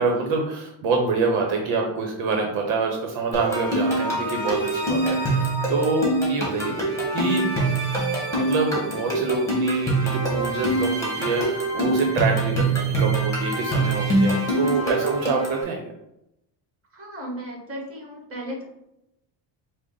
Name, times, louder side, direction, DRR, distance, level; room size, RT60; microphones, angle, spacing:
voice 1, 0.0-7.4 8.4-15.8, right 3 dB, 70° right, 2 dB, 0.9 m, -26 dB
sound 1, 3.3-15.6, right 2 dB, 5° left, 1.6 m, -24 dB
voice 2, 14.6-14.9 16.9-18.6, right 1 dB, 25° right, -1 dB, 1.5 m, -34 dB
4.9 x 2.1 x 3.9 m, 0.84 s
cardioid pair, 120°, 49 cm